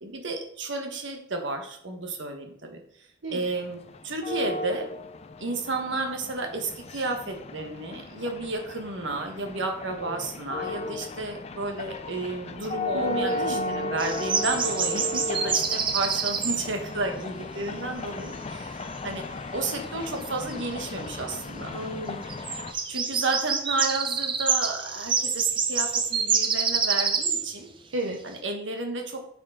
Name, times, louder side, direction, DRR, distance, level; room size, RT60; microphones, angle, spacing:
voice 1, 0.0-2.8 3.3-3.8 4.0-4.9 5.4-19.2 19.5-21.7 22.9-27.7 28.2-29.3, right 2 dB, 65° right, 4 dB, 1.3 m, -32 dB
sound 1, 3.3-22.7, left 2 dB, 30° left, 0.4 m, -36 dB
voice 2, 12.9-14.0 14.9-15.3 21.7-22.6 27.9-28.2, right 1 dB, 80° right, 1 dB, 0.8 m, -33 dB
sound 2, 14.0-16.7 20.5-20.6 20.8-20.9 22.3-27.5, right 6 dB, 25° right, 0.5 m, -26 dB
6.6 x 6.5 x 3.8 m, 0.67 s
head